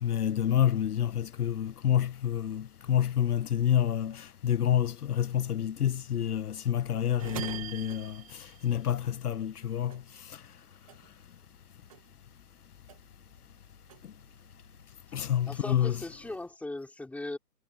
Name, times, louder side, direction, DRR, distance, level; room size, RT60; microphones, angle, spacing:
voice 1, 0.0-10.4 15.1-16.0, left 10 dB, 65° left, 1.2 m, -28 dB
sound 1, 7.2-9.6 9.9-11.6 11.9-13.3 13.7-14.8, right 12 dB, 25° right, 0.5 m, -44 dB
voice 2, 15.1-17.4, left 2 dB, 5° left, 3.2 m, -39 dB
hypercardioid pair, 130°, 49 cm